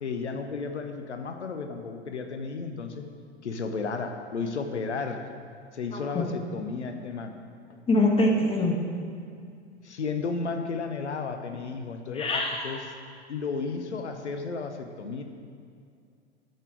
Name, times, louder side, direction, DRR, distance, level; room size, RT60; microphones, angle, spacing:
voice 1, 0.0-3.1 3.4-5.3 5.7-7.4 7.7-7.8 9.8-12.9 13.3-15.2, left 4 dB, 85° left, 6 dB, 0.8 m, -33 dB
voice 2, 5.9-6.2 7.9-8.7 12.1-12.8, left 1 dB, 15° left, 0 dB, 1.5 m, -24 dB
10.0 x 6.6 x 4.7 m, 2.3 s
figure-of-eight pair, 95°, 33 cm